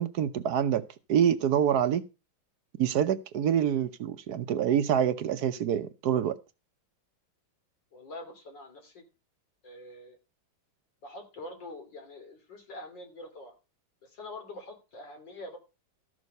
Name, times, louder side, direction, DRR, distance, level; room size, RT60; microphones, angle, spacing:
voice 1, 0.0-2.1 2.8-6.4, right 9 dB, 65° right, 1.1 m, -26 dB
voice 2, 7.9-9.0 9.6-10.2 11.0-13.5 14.0-15.6, left 2 dB, 65° left, 3.6 m, -45 dB
13.5 x 6.4 x 5.3 m
omnidirectional pair, 2.1 m